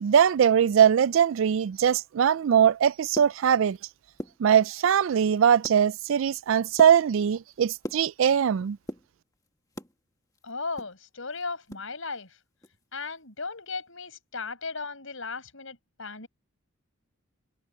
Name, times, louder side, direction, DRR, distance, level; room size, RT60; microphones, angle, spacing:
voice 1, 0.0-3.8 4.4-8.8, right 8 dB, 65° right, 0.3 m, -21 dB
sound 1, 2.9-3.8 4.1-4.9 5.3-5.8 6.2-8.5 8.8-10.0 10.3-11.9 12.1-12.2 12.6-12.8 13.2-13.4, equal, 15° left, 1.8 m, -40 dB
voice 2, 10.4-12.3 12.9-16.3, left 4 dB, 70° left, 5.0 m, -36 dB
head